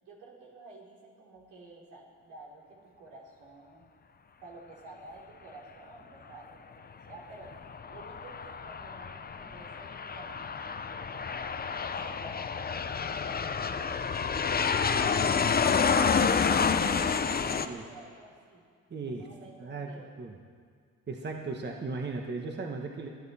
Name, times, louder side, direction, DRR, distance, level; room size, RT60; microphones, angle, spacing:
voice 1, 0.0-3.9 4.4-7.5 7.9-12.8 13.2-18.6 19.0-20.1, right 2 dB, 85° right, -2 dB, 3.5 m, -51 dB
Aircraft, 7.4-17.7, left 6 dB, 30° left, 0.7 m, -29 dB
voice 2, 18.9-19.3 19.6-19.9 20.2-20.3 21.1-23.1, right 3 dB, 35° right, 2 dB, 1.4 m, -36 dB
26.5 x 9.2 x 4.3 m, 2.1 s
cardioid pair, 90°, 30 cm